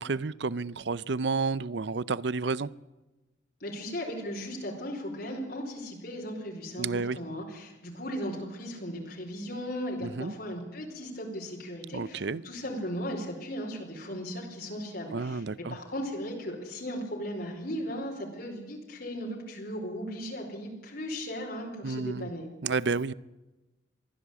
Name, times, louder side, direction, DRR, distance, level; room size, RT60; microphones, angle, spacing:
voice 1, 0.0-2.7 6.8-7.2 10.0-10.3 11.9-12.4 15.1-15.8 21.8-22.3 22.6-23.1, right 4 dB, 60° right, 20 dB, 0.6 m, -30 dB
voice 2, 3.6-6.9 7.1-22.5, equal, 50° left, -1 dB, 4.7 m, -37 dB
23.5 x 15.5 x 8.4 m, 1.1 s
head